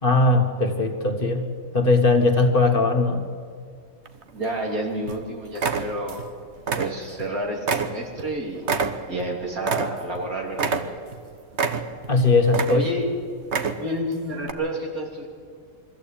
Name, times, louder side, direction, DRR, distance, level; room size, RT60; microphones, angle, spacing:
voice 1, 0.0-3.2 12.1-12.9, left 3 dB, 40° left, 5 dB, 1.7 m, -19 dB
sound 1, 4.1-4.7 5.1-5.2 5.6-6.3 6.6-7.3 7.7-10.2 10.5-11.2 11.5-12.1 12.5-13.1 13.4-14.0 14.4-14.5, right 5 dB, 55° right, 1.4 m, -27 dB
voice 2, 4.3-6.2 6.8-8.7 9.1-10.8 12.7-13.1 13.8-15.3, right 1 dB, 85° right, 0 dB, 3.8 m, -29 dB
23.0 x 14.5 x 8.7 m, 2.2 s
omnidirectional pair, 1.5 m